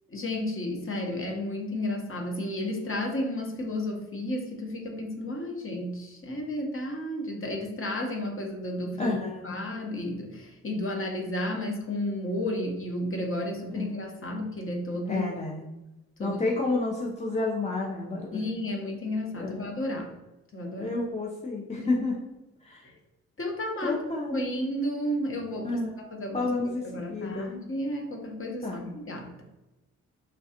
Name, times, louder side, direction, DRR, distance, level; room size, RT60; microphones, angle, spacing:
voice 1, 0.1-9.2 9.4-15.2 16.2-16.4 18.3-20.1 20.5-20.9 21.8-22.0 23.4-24.0 24.2-25.8 26.2-26.5 26.8-29.4, left 1 dB, 35° left, 1 dB, 1.0 m, -32 dB
voice 2, 9.0-9.6 13.7-14.0 15.1-15.7 16.2-18.4 19.4-19.7 20.8-22.2 22.6-22.9 23.8-24.4 25.6-25.9 26.3-27.5 28.6-28.9, left 3 dB, 20° left, -2 dB, 0.6 m, -30 dB
3.3 x 2.3 x 2.8 m, 1.0 s
hypercardioid pair, 45°, 38 cm